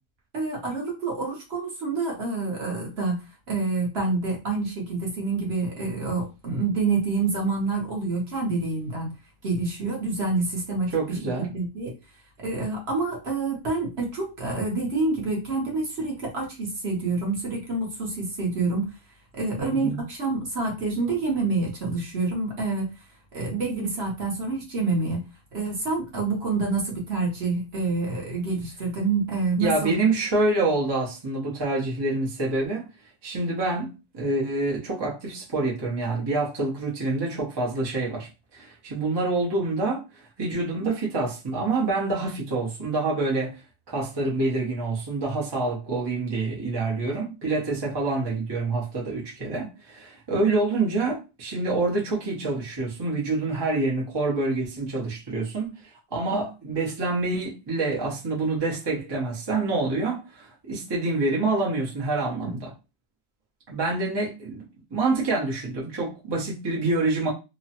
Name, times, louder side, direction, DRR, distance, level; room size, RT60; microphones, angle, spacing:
voice 1, 0.3-3.2 3.5-9.1 9.4-11.9 12.4-18.9 19.3-22.9 23.3-25.2 25.5-29.9 62.4-62.6, right 3 dB, 50° right, 0.9 m, -27 dB
voice 2, 10.9-11.5 19.6-20.1 29.6-32.8 33.2-40.0 40.4-43.6 43.9-55.7 56.1-62.7 63.7-64.6 64.9-67.3, right 3 dB, 30° right, 0.4 m, -27 dB
2.9 x 2.1 x 2.8 m
omnidirectional pair, 1.8 m